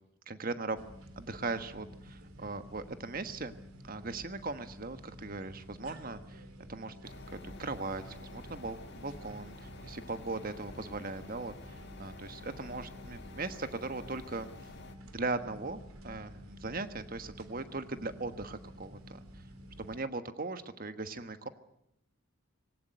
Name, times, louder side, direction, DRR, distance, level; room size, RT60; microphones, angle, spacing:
voice 1, 0.3-0.8 1.2-3.5 3.8-6.4 6.7-14.5 15.1-19.2 19.8-21.5, right 3 dB, 40° right, 10 dB, 1.4 m, -39 dB
sound 1, 0.8-20.0, equal, 80° right, 3.3 m, -51 dB
sound 2, 7.0-15.0, left 2 dB, 50° left, 1.8 m, -50 dB
20.0 x 18.0 x 9.3 m, 0.79 s
head